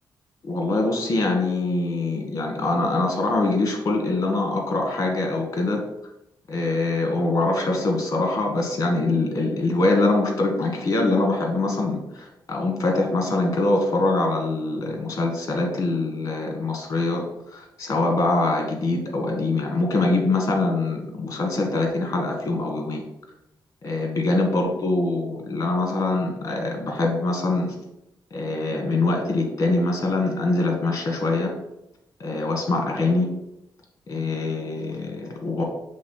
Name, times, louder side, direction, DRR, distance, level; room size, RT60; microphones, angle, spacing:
voice 1, 0.4-5.8 6.5-17.2 17.5-23.0 23.8-27.8 28.3-31.5 32.2-33.3 34.1-35.6, left 2 dB, 40° left, 1 dB, 1.7 m, -23 dB
6.7 x 3.4 x 5.5 m, 0.84 s
wide cardioid pair, 145°, 8 cm